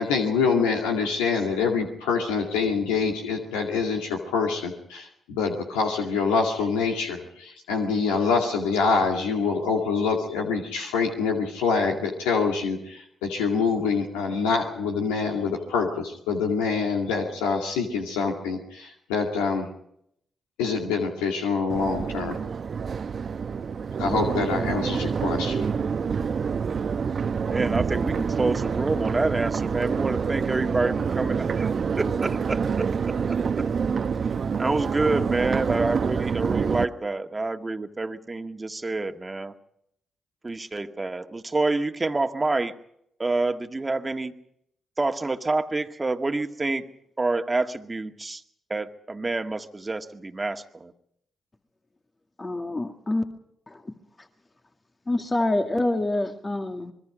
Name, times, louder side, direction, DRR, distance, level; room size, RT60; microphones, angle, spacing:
voice 1, 0.0-19.7 20.6-22.4 24.0-25.7, left 5 dB, 90° left, 1 dB, 2.2 m, -25 dB
Crowd, 21.7-36.8, right 6 dB, 55° right, 0.9 m, -27 dB
voice 2, 27.5-33.2 34.6-39.5 40.4-42.7 43.2-44.3 45.0-46.9 47.2-48.4 48.7-50.9, right 3 dB, 30° right, 7 dB, 1.8 m, -27 dB
voice 3, 52.4-53.2 53.7-53.9 55.1-56.9, left 2 dB, 30° left, 5 dB, 2.1 m, -26 dB
26.0 x 21.5 x 5.0 m, 0.72 s
hypercardioid pair, 45°, 0 cm